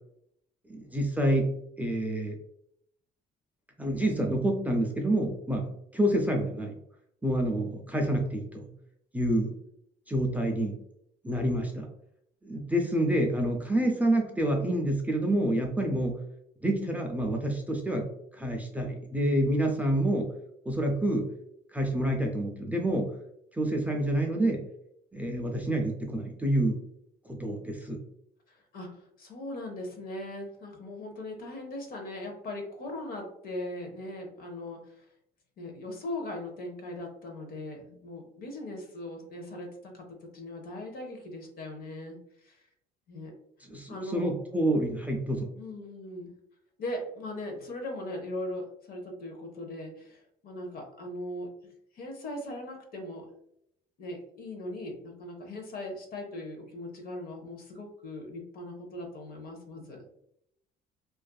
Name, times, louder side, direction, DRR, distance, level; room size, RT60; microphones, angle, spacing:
voice 1, 0.7-1.5 1.8-2.4 3.8-6.8 7.2-8.7 9.1-9.5 10.1-10.8 11.2-11.9 12.4-16.2 16.6-18.1 18.3-20.3 20.7-21.3 21.7-23.1 23.5-24.6 25.1-26.8 27.3-28.0 43.7-45.5, right 1 dB, 10° right, 2 dB, 0.3 m, -28 dB
voice 2, 28.5-34.8 35.6-42.2 42.4-42.5 43.1-43.3 43.9-44.3 45.6-46.3 46.8-51.5 51.9-53.3 54.0-60.1, left 1 dB, 60° left, 3 dB, 0.7 m, -39 dB
2.5 x 2.4 x 2.2 m, 0.73 s
cardioid pair, 110°, 17 cm